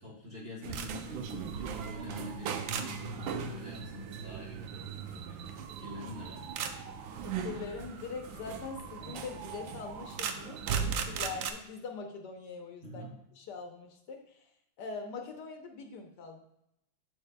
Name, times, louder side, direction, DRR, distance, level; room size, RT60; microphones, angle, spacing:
voice 1, 0.0-6.5 12.8-13.1, left 1 dB, 35° right, -5 dB, 1.0 m, -45 dB
sound 1, 0.6-11.5, right 6 dB, 80° right, 1.3 m, -38 dB
voice 2, 7.2-13.0 13.3-14.5 14.8-16.4, left 4 dB, 70° left, 3 dB, 1.2 m, -42 dB
7.8 x 6.1 x 2.2 m, 0.80 s
omnidirectional pair, 2.1 m